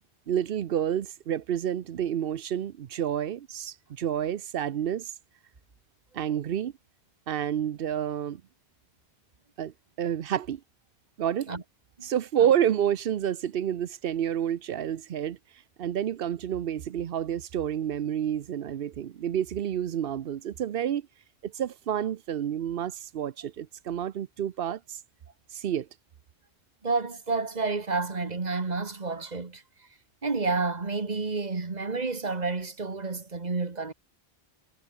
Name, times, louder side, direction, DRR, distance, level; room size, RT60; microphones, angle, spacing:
voice 1, 0.3-5.1 6.1-6.7 7.3-8.4 9.6-10.6 11.2-11.5 12.0-15.4 15.8-21.1 21.4-25.0 25.5-25.9, right 9 dB, 65° right, 0.9 m, -29 dB
voice 2, 26.8-29.6 30.2-33.9, right 3 dB, 40° right, 1.8 m, -30 dB
omnidirectional pair, 1.0 m